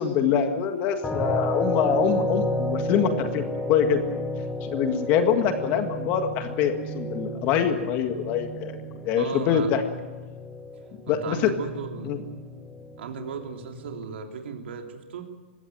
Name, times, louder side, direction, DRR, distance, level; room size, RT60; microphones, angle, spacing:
voice 1, 0.0-3.4 3.7-4.0 4.6-8.7 9.0-9.8 11.1-11.5 12.0-12.2, left 8 dB, 25° left, 7 dB, 1.8 m, -24 dB
sound 1, 1.0-14.0, equal, 5° left, 1.9 m, -32 dB
voice 2, 9.2-9.7 11.1-12.1 13.0-15.3, right 6 dB, 60° right, 3 dB, 3.2 m, -36 dB
21.5 x 16.5 x 9.4 m, 1.3 s
hypercardioid pair, 165°, 7 cm